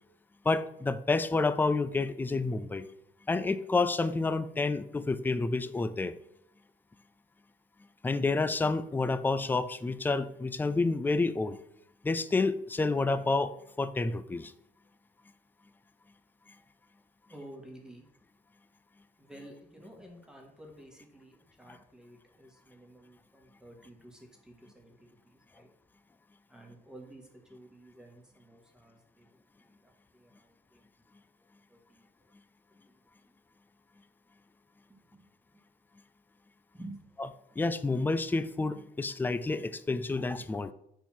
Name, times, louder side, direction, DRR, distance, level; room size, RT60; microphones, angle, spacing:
voice 1, 0.4-2.9 3.3-6.1 8.0-11.6 12.0-14.5 37.6-40.7, left 3 dB, 10° left, 14 dB, 0.4 m, -29 dB
voice 2, 17.3-18.1 19.2-25.7 26.5-29.3 29.6-30.9 31.7-32.1 32.9-33.3 34.9-35.2 36.7-37.0, right 1 dB, 5° right, 1 dB, 1.7 m, -52 dB
7.0 x 4.5 x 5.9 m, 0.77 s
cardioid pair, 115°, 17 cm